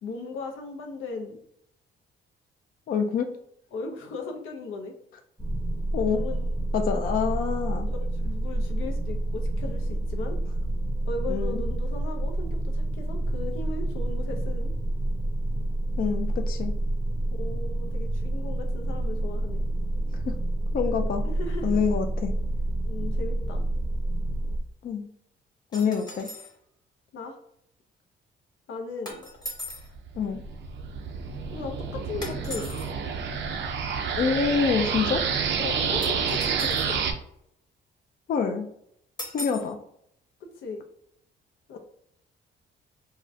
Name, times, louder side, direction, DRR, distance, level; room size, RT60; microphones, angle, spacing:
voice 1, 0.0-1.4 3.7-4.9 6.0-6.6 7.9-10.4 11.1-14.7 17.3-19.6 21.2-21.8 22.9-23.6 27.1-27.4 28.7-29.2 31.5-32.7 35.6-37.1 40.4-40.8 41.7-41.8, left 3 dB, 85° left, 3 dB, 0.6 m, -37 dB
voice 2, 2.9-3.3 5.9-6.2 6.7-7.9 11.3-11.6 16.0-16.7 20.2-20.3 20.7-21.2 21.6-22.3 24.8-25.1 25.7-26.3 30.2-30.4 34.2-35.2 38.3-38.7 39.3-39.8, left 6 dB, 45° left, 5 dB, 0.4 m, -26 dB
sound 1, 5.4-24.6, right 1 dB, ahead, 0.6 m, -28 dB
sound 2, 25.7-26.5 29.1-29.9 32.2-32.9 36.0-37.0 39.2-39.7, left 1 dB, 20° left, 1.0 m, -39 dB
sound 3, 29.8-37.1, right 6 dB, 65° right, 0.5 m, -29 dB
3.7 x 2.1 x 2.6 m, 0.70 s
cardioid pair, 90°, 20 cm